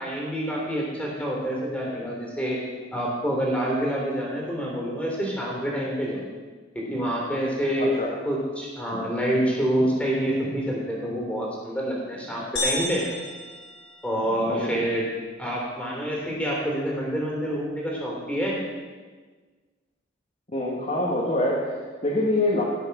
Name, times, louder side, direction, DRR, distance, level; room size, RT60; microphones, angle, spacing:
voice 1, 0.0-2.6 2.9-6.2 6.7-7.9 8.2-13.0 14.0-15.0 15.4-18.6, equal, 5° left, -3 dB, 3.3 m, -27 dB
voice 2, 7.8-8.1 14.5-14.8 20.5-22.6, left 1 dB, 35° left, -4 dB, 1.8 m, -25 dB
sound 1, 12.6-14.5, left 1 dB, 75° left, 3.7 m, -32 dB
17.0 x 6.5 x 5.9 m, 1.4 s
head